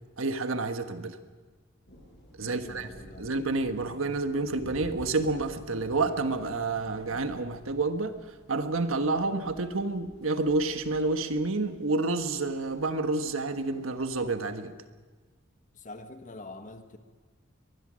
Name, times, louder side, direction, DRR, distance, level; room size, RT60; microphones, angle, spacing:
voice 1, 0.2-1.2 2.4-2.9 3.2-8.1 8.5-14.7, right 3 dB, 90° right, 8 dB, 1.4 m, -29 dB
sound 1, 1.9-14.3, equal, 60° left, 7.9 m, -52 dB
voice 2, 2.4-3.5 15.7-17.0, left 2 dB, 40° left, 7 dB, 1.5 m, -45 dB
23.0 x 20.5 x 6.4 m, 1.4 s
head